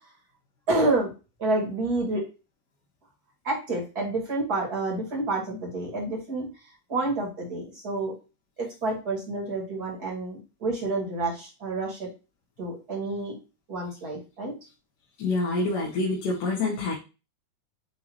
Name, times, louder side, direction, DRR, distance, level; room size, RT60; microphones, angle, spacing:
voice 1, 0.7-1.1 1.4-2.2 3.4-6.5 6.9-8.1 8.6-12.1 12.6-13.4 13.7-14.5, right 2 dB, 30° right, -3 dB, 2.2 m, -29 dB
voice 2, 15.2-16.9, left 3 dB, 60° left, -5 dB, 2.6 m, -26 dB
8.8 x 3.7 x 3.0 m, 0.30 s
omnidirectional pair, 4.7 m